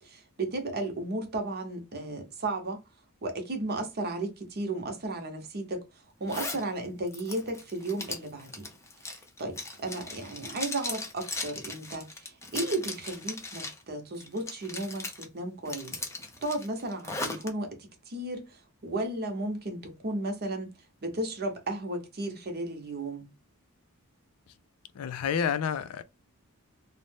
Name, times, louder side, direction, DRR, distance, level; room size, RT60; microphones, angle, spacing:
voice 1, 0.0-2.8 3.2-5.8 6.2-8.7 9.0-16.0 16.4-20.7 21.0-23.3, right 2 dB, 45° right, 0.8 m, -34 dB
Zipper (clothing), 6.3-6.6 7.1-13.8 14.2-15.2 15.6-17.5, left 2 dB, 15° left, 0.5 m, -38 dB
voice 2, 24.9-26.0, left 7 dB, 75° left, 0.3 m, -29 dB
2.6 x 2.1 x 3.2 m
head